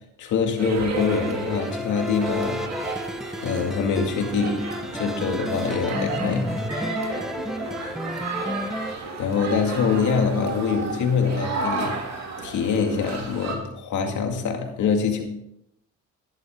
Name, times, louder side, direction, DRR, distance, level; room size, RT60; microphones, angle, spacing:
voice 1, 0.2-2.7 3.4-6.6 9.2-12.0 12.4-15.2, left 5 dB, 75° left, 3 dB, 2.3 m, -24 dB
sound 1, 0.6-13.6, right 3 dB, 60° right, 2.6 m, -33 dB
sound 2, 1.0-9.0, left 1 dB, ahead, 1.0 m, -32 dB
12.0 x 11.0 x 3.8 m, 0.81 s
cardioid pair, 90°, 30 cm